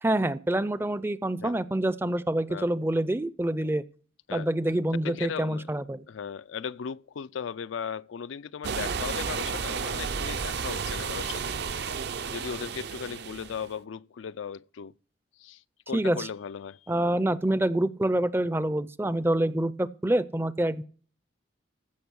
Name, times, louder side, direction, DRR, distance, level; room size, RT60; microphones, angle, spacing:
voice 1, 0.0-3.8 4.3-6.1 15.9-16.3 16.9-20.8, right 1 dB, 10° right, 0.4 m, -26 dB
voice 2, 5.0-5.7 6.1-11.5 12.3-14.9 15.4-16.9, left 7 dB, 90° left, 0.4 m, -37 dB
sound 1, 8.6-13.7, right 5 dB, 60° right, 0.6 m, -32 dB
15.0 x 5.9 x 6.2 m
head